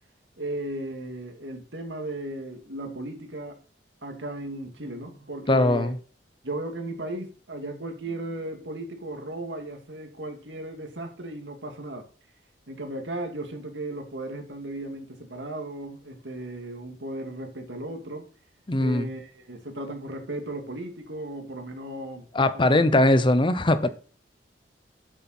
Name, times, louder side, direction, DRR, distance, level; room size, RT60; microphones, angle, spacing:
voice 1, 0.4-3.6 4.0-5.9 6.4-12.0 12.7-18.3 18.8-22.3 22.5-23.0 23.8-23.9, right 1 dB, 80° right, 2.4 m, -36 dB
voice 2, 5.5-6.0 18.7-19.1 22.3-23.9, left 1 dB, 30° left, 0.8 m, -20 dB
8.2 x 7.6 x 4.3 m
head